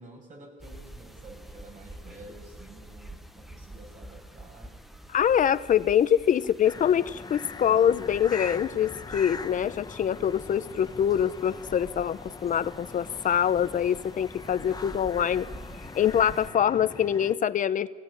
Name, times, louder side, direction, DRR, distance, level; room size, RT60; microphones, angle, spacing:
voice 1, 0.0-4.7, right 2 dB, 55° right, 1 dB, 6.6 m, -49 dB
sound 1, 0.6-16.5, right 1 dB, ahead, 1.0 m, -47 dB
voice 2, 5.1-15.5 15.9-17.9, left 9 dB, 60° left, 14 dB, 0.7 m, -24 dB
sound 2, 6.6-17.3, left 4 dB, 25° left, 1.2 m, -42 dB
22.5 x 17.5 x 9.6 m, 1.4 s
cardioid pair, 100°, 16 cm